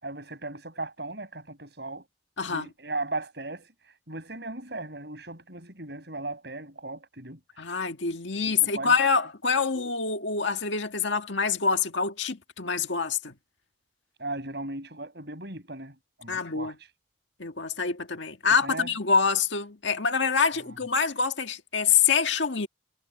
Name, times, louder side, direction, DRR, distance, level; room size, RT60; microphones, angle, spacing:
voice 1, 0.0-2.0 2.5-7.4 8.4-8.9 14.2-16.9 18.6-18.9, right 2 dB, 60° right, 7.1 m, -37 dB
voice 2, 2.4-2.7 7.6-13.3 16.3-16.8 17.4-22.7, left 5 dB, 80° left, 1.9 m, -26 dB
head